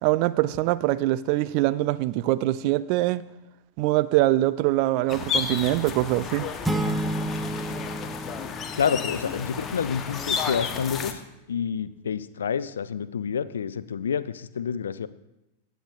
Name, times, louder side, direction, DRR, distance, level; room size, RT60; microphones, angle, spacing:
voice 1, 0.0-3.2 3.8-6.5, right 16 dB, 45° right, 17 dB, 0.4 m, -23 dB
sound 1, 5.1-11.1, left 6 dB, 25° left, 0.9 m, -32 dB
sound 2, 6.6-9.4, right 1 dB, ahead, 0.8 m, -30 dB
voice 2, 8.8-15.1, left 7 dB, 65° left, 16 dB, 0.4 m, -28 dB
16.0 x 9.1 x 2.5 m, 0.92 s
figure-of-eight pair, 90°, 0 cm